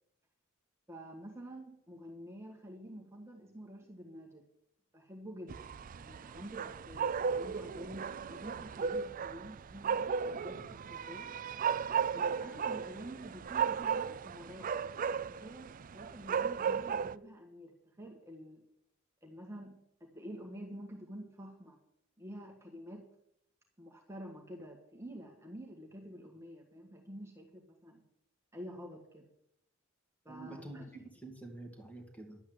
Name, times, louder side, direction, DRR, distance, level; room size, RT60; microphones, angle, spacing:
voice 1, 0.9-4.4 4.9-11.3 12.1-14.7 15.2-18.6 19.2-21.8 22.2-23.1 23.8-28.0 28.5-29.3 30.2-30.8, equal, 15° right, 0 dB, 1.6 m, -48 dB
sound 1, 5.5-17.2, right 6 dB, 40° right, 0.4 m, -35 dB
voice 2, 30.3-32.4, right 2 dB, 5° left, 4 dB, 2.2 m, -48 dB
11.5 x 8.6 x 7.9 m, 0.78 s
head